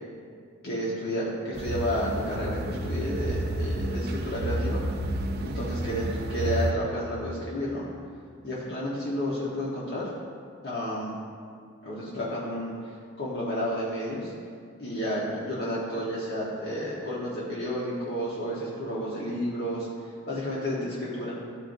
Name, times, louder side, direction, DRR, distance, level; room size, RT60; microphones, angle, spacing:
voice 1, 0.6-4.8 5.4-7.9 8.4-10.1 10.6-11.1 11.8-14.3 14.8-21.3, equal, 55° left, -7 dB, 1.1 m, -31 dB
sound 1, 1.5-6.7, right 1 dB, 50° right, 0.4 m, -30 dB
13.0 x 4.5 x 2.6 m, 2.1 s
head